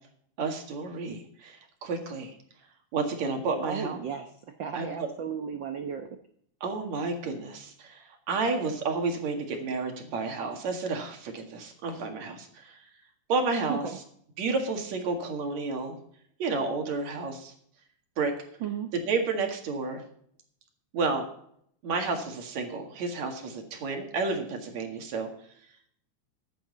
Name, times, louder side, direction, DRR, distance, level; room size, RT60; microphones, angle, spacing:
voice 1, 0.4-2.3 2.9-4.0 4.7-5.1 6.6-12.8 13.3-13.9 14.4-16.0 16.4-17.5 18.2-18.3 18.9-20.0 20.9-21.3 21.8-25.3, right 4 dB, 65° right, 3 dB, 3.1 m, -31 dB
voice 2, 3.6-4.3 4.6-6.2 13.7-14.0 18.6-18.9, right 7 dB, 80° right, 6 dB, 1.0 m, -34 dB
14.5 x 10.5 x 4.0 m, 0.66 s
omnidirectional pair, 3.5 m